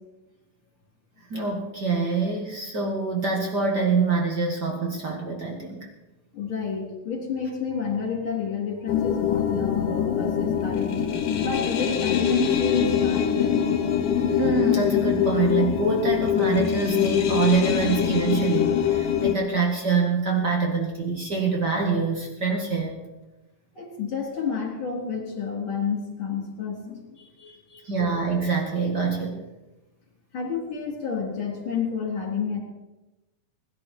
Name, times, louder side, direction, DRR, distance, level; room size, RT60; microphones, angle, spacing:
voice 1, 1.3-5.9 14.3-22.9 27.8-29.4, right 4 dB, 35° right, 0 dB, 1.9 m, -25 dB
voice 2, 6.3-11.0 11.4-13.5 23.7-27.9 30.3-32.6, left 5 dB, 35° left, 0 dB, 4.1 m, -30 dB
sound 1, 8.9-19.3, left 9 dB, 70° left, 2.7 m, -23 dB
20.5 x 12.0 x 4.6 m, 1.0 s
omnidirectional pair, 4.2 m